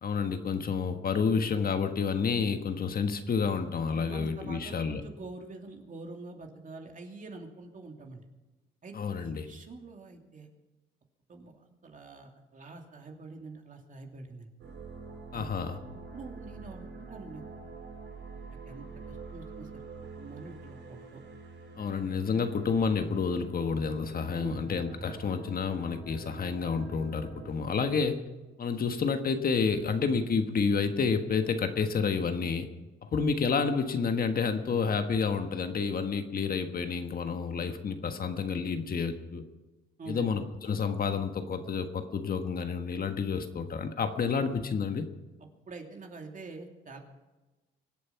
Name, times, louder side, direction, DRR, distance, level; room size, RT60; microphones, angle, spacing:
voice 1, 0.0-5.0 8.9-9.5 15.3-15.8 21.8-28.2 28.6-32.7 33.0-39.4 40.1-45.1, left 5 dB, 50° left, 7 dB, 1.5 m, -29 dB
voice 2, 3.9-8.2 8.8-9.0 9.2-10.5 11.3-14.5 15.3-17.4 18.7-19.8 20.2-21.2 24.4-24.6 40.0-40.3 45.7-47.0, right 3 dB, 40° right, 2 dB, 2.8 m, -45 dB
sound 1, 14.6-27.5, right 4 dB, 70° right, 4.0 m, -46 dB
24.0 x 8.4 x 5.8 m, 1.2 s
cardioid pair, 90°, 20 cm